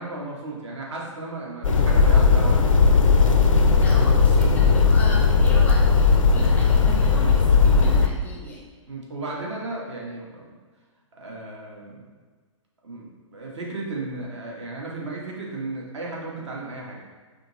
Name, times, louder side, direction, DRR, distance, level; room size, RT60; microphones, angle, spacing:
voice 1, 0.0-2.6 6.4-6.8 8.9-10.5 11.2-12.0 12.8-17.0, right 2 dB, 60° right, -2 dB, 1.1 m, -34 dB
sound 1, 1.6-8.1, left 4 dB, 80° left, 0.4 m, -17 dB
voice 2, 3.8-8.6, left 1 dB, 10° left, -3 dB, 0.5 m, -36 dB
5.0 x 2.8 x 2.9 m, 1.4 s
figure-of-eight pair, 120°, 17 cm